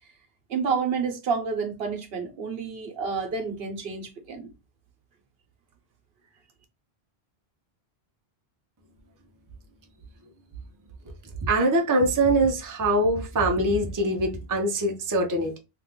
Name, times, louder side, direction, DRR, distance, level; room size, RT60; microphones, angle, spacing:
voice 1, 0.5-4.5, right 5 dB, 70° right, 1.0 m, -29 dB
voice 2, 11.4-15.6, right 1 dB, 25° right, 0.5 m, -23 dB
2.9 x 2.4 x 3.6 m
omnidirectional pair, 1.1 m